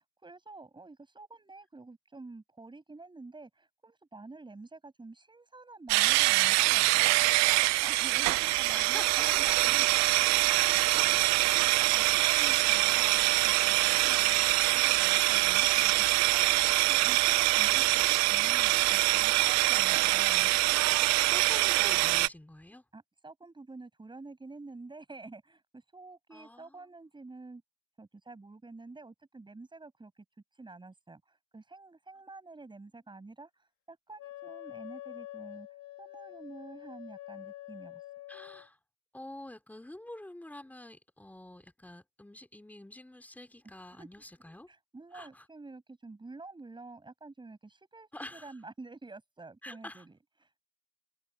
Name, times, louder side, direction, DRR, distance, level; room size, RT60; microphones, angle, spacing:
voice 1, 0.2-9.9 11.1-18.0 18.3-20.5 22.9-27.6 28.0-30.2 30.6-35.7 36.0-38.0 44.0-44.1 44.7-50.5, right 3 dB, 15° right, 7.1 m, -49 dB
sound 1, 5.9-22.3, right 21 dB, 50° right, 0.8 m, -24 dB
voice 2, 8.7-10.1 10.4-10.7 13.9-14.6 21.2-22.8 26.3-26.8 38.3-38.8 39.1-44.7 45.1-45.4 48.1-48.6 49.6-50.0, left 1 dB, 5° left, 4.8 m, -47 dB
Wind instrument woodwind instrument, 34.2-38.7, left 15 dB, 50° left, 2.5 m, -46 dB
hypercardioid pair, 95°, 35 cm